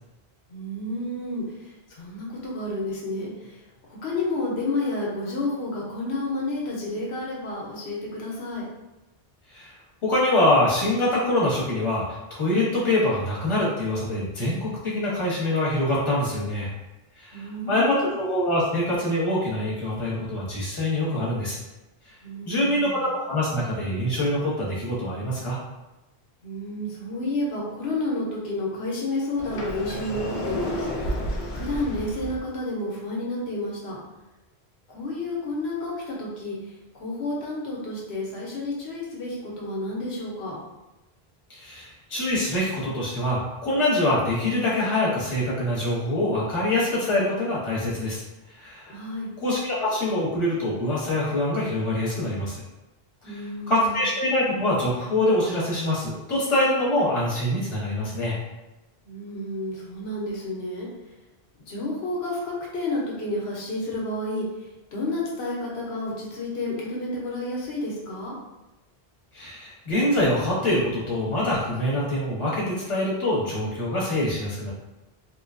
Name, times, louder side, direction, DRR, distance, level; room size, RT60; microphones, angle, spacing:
voice 1, 0.5-8.7 17.3-18.1 22.2-23.0 26.4-30.9 31.5-34.0 34.9-40.6 48.9-49.3 53.2-54.0 59.0-60.9 61.7-68.4, left 2 dB, 85° left, -4 dB, 1.0 m, -30 dB
voice 2, 10.0-16.7 17.2-21.6 22.0-22.1 22.4-25.6 41.5-48.2 48.5-49.0 49.4-52.6 53.2-58.4 69.3-74.7, left 1 dB, 30° left, -7 dB, 0.9 m, -25 dB
Sliding door, 29.4-32.4, equal, 60° left, 0.6 m, -31 dB
3.0 x 2.2 x 2.4 m, 1.0 s
omnidirectional pair, 1.1 m